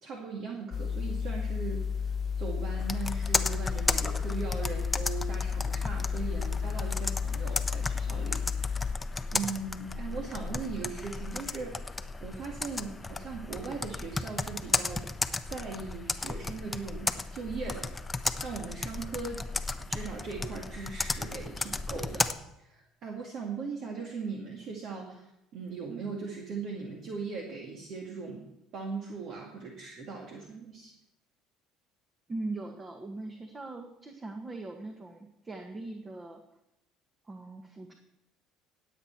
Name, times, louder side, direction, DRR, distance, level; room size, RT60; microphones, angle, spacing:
voice 1, 0.0-9.0 9.3-11.8 12.2-15.1 15.4-17.9 18.4-19.4 19.9-22.3 22.6-25.3 25.5-28.5 28.7-30.9, right 4 dB, 60° right, 0 dB, 2.1 m, -39 dB
sound 1, 0.7-8.9, left 6 dB, 45° left, 0.4 m, -32 dB
Computer keyboard, 2.8-22.3, left 3 dB, 15° left, 0.9 m, -34 dB
voice 2, 32.3-36.4 37.2-37.9, right 2 dB, 25° right, 4 dB, 1.6 m, -40 dB
18.0 x 8.2 x 4.6 m, 0.86 s
hypercardioid pair, 75°, 0 cm